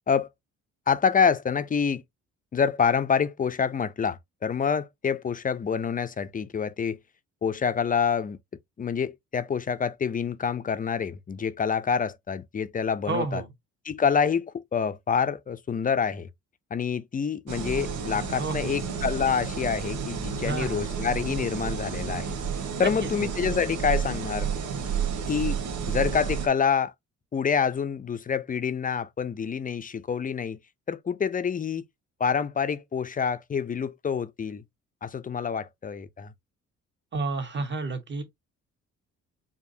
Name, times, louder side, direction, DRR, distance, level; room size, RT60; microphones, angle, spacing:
voice 1, 0.9-2.0 2.5-7.0 7.4-8.4 8.8-13.4 13.9-16.3 16.7-22.4 22.8-24.5 25.3-25.6 25.9-26.9 27.3-30.6 30.9-31.8 32.2-34.6 35.0-36.3, left 6 dB, 30° left, 0.5 m, -27 dB
voice 2, 13.1-13.5 18.4-18.9 20.4-20.8 22.8-23.3 37.1-38.2, right 3 dB, 35° right, 1.5 m, -31 dB
sound 1, 17.5-26.5, right 7 dB, 80° right, 1.5 m, -31 dB
4.8 x 2.7 x 2.7 m
cardioid pair, 90°, 30 cm